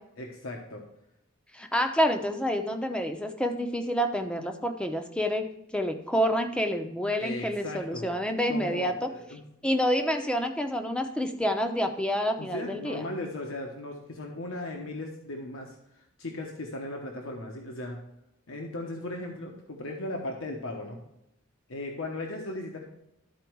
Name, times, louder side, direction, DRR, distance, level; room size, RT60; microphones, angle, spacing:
voice 1, 0.2-0.8 7.2-8.1 8.5-9.4 12.4-18.0 18.5-21.0 21.7-22.8, left 2 dB, 80° left, 1 dB, 1.1 m, -37 dB
voice 2, 1.5-5.4 5.7-9.1 9.6-13.1, equal, 5° left, 5 dB, 0.7 m, -28 dB
12.5 x 4.5 x 4.6 m, 0.81 s
head